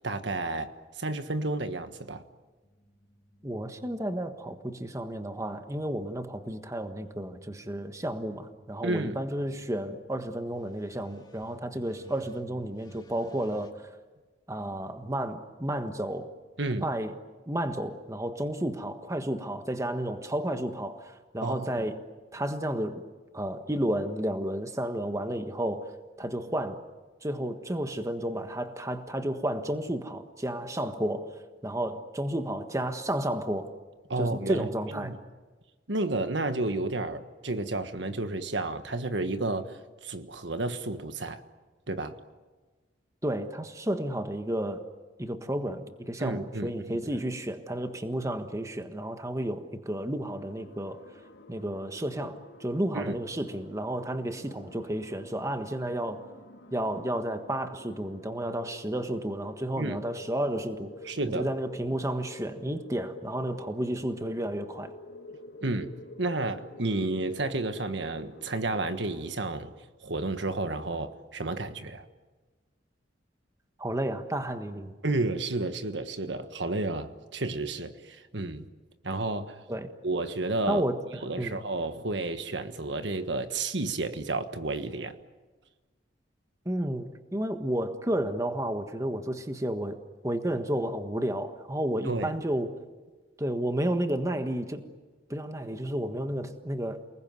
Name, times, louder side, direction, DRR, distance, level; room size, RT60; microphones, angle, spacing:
voice 1, 0.0-2.2 8.8-9.2 16.6-16.9 21.4-21.9 34.1-34.7 34.9-35.2 35.9-41.4 41.9-42.1 46.2-47.0 52.9-53.2 59.8-60.0 61.0-61.5 65.6-69.7 70.0-72.0 75.0-78.6 79.0-79.6 80.0-80.8 81.2-85.2 92.1-92.4, right 2 dB, 70° right, 1.5 m, -31 dB
sound 1, 2.6-13.7, equal, 20° left, 2.5 m, -56 dB
voice 2, 3.4-13.7 14.5-16.3 16.8-17.1 17.5-22.0 22.3-23.0 23.3-25.9 26.2-26.8 27.2-31.3 31.6-33.7 34.2-35.2 43.2-44.9 45.2-51.0 51.5-56.2 56.7-60.9 61.3-64.9 73.8-74.9 79.7-79.9 80.7-81.6 86.6-92.7 93.4-94.9 95.3-97.0, right 1 dB, 15° right, 1.5 m, -32 dB
sound 2, 50.3-69.4, left 1 dB, 70° left, 2.1 m, -49 dB
29.0 x 20.0 x 9.5 m
head